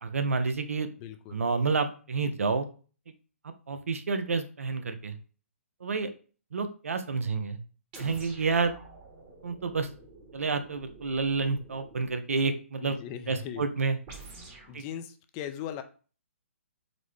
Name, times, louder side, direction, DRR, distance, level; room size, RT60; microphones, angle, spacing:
voice 1, 0.0-0.9 1.3-2.7 3.7-5.2 5.8-6.1 6.5-7.6 8.0-8.8 9.4-9.9 10.3-13.0 13.3-14.0 14.7-14.8, right 4 dB, 80° right, 9 dB, 0.5 m, -29 dB
voice 2, 1.0-1.4 12.8-13.7 14.7-15.8, left 9 dB, 30° left, 9 dB, 0.4 m, -39 dB
sound 1, 7.9-12.2 14.1-14.8, right 3 dB, 30° right, 1.0 m, -49 dB
4.0 x 2.1 x 3.1 m, 0.37 s
hypercardioid pair, 135°, 7 cm